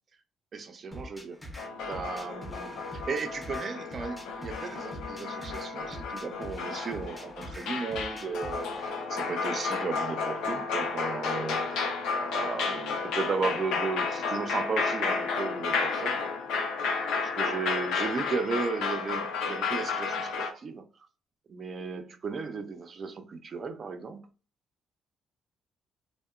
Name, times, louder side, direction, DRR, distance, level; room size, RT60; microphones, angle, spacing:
voice 1, 0.5-1.4 1.9-16.2 17.2-20.9 21.5-24.2, right 4 dB, 45° right, 0.4 m, -35 dB
sound 1, 0.9-8.9, equal, 10° left, 0.6 m, -44 dB
sound 2, 1.6-20.5, left 4 dB, 90° left, 0.5 m, -32 dB
2.7 x 2.1 x 2.3 m
cardioid pair, 95°, 0 cm